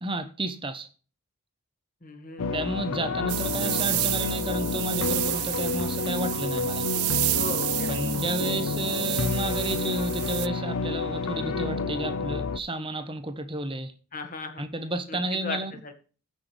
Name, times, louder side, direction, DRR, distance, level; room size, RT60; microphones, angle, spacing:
voice 1, 0.0-0.9 2.5-6.9 7.9-13.9 14.6-15.7, right 1 dB, 25° right, 1.0 m, -32 dB
voice 2, 2.0-2.6 7.3-8.1 14.1-14.6 15.1-15.6 15.8-15.9, left 3 dB, 35° left, 1.9 m, -36 dB
sound 1, 2.4-12.6, left 4 dB, 80° left, 0.6 m, -29 dB
sound 2, 3.3-10.5, right 20 dB, 85° right, 0.4 m, -30 dB
15.0 x 6.4 x 3.4 m
head